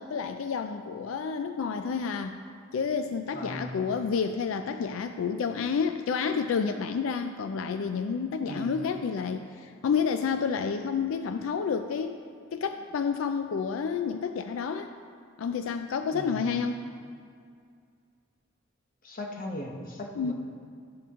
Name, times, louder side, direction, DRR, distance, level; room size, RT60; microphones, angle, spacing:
voice 1, 0.0-2.4 2.7-12.2 12.5-14.9 15.4-16.9 20.1-20.3, left 6 dB, 85° left, 8 dB, 0.4 m, -30 dB
voice 2, 3.3-3.8 8.4-8.8 16.1-16.5 19.0-20.3, left 1 dB, 45° left, 1 dB, 1.0 m, -38 dB
12.0 x 6.8 x 3.6 m, 2.3 s
head